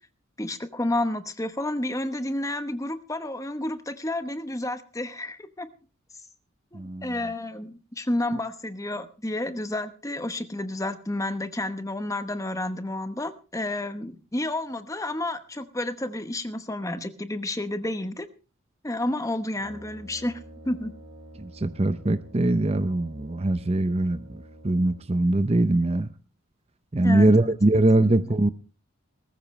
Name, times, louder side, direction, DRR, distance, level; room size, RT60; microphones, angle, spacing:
voice 1, 0.4-5.7 6.7-18.3 18.8-20.4 20.6-20.9 27.0-27.5 28.0-28.1, left 1 dB, 15° left, 1.0 m, -30 dB
voice 2, 6.7-7.2 21.4-26.1 26.9-28.5, right 2 dB, 30° right, 0.6 m, -22 dB
Brass instrument, 19.5-25.3, right 1 dB, 55° right, 5.4 m, -48 dB
20.0 x 14.0 x 3.2 m
head